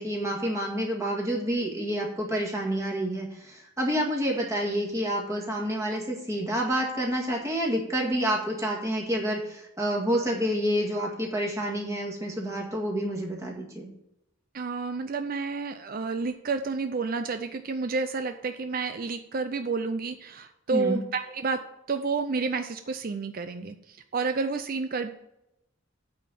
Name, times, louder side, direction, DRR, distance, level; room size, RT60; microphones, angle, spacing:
voice 1, 0.0-13.9 20.7-21.0, equal, 15° right, -1 dB, 1.8 m, -28 dB
voice 2, 14.5-21.6 21.9-23.7 24.1-25.1, right 4 dB, 45° right, 8 dB, 0.5 m, -30 dB
8.8 x 4.2 x 7.2 m, 0.85 s
head